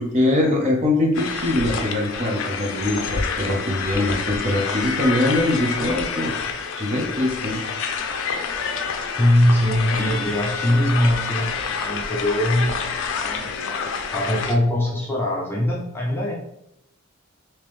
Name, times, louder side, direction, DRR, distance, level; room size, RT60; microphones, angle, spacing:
voice 1, 0.0-7.6, left 1 dB, 30° right, -1 dB, 0.7 m, -23 dB
sound 1, 1.1-14.6, left 5 dB, 60° left, 0.4 m, -28 dB
voice 2, 9.2-11.6 11.8-12.8 13.2-13.5 14.1-16.3, left 1 dB, 10° left, -4 dB, 0.5 m, -21 dB
3.5 x 2.9 x 3.1 m, 0.79 s
head